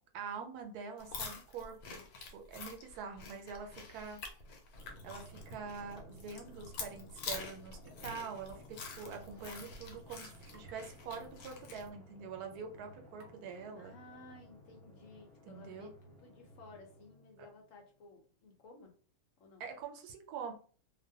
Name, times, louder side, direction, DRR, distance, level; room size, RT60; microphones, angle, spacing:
voice 1, 0.1-2.0 2.3-4.2 5.0-13.9 15.5-15.9 17.4-17.5 19.6-20.5, right 5 dB, 85° right, 4 dB, 1.1 m, -45 dB
sound 1, 1.0-11.9, left 4 dB, 85° left, 1.1 m, -47 dB
Drum, 4.7-17.8, equal, ahead, 0.7 m, -56 dB
sound 2, 7.8-8.1 8.4-8.5 10.5-10.8 11.3-11.4 12.2-12.3 13.1-13.4, right 1 dB, 60° right, 0.9 m, -62 dB
voice 2, 13.7-18.9 19.4-19.6, left 3 dB, 65° left, 2 dB, 1.0 m, -56 dB
2.5 x 2.1 x 2.7 m, 0.40 s
omnidirectional pair, 1.6 m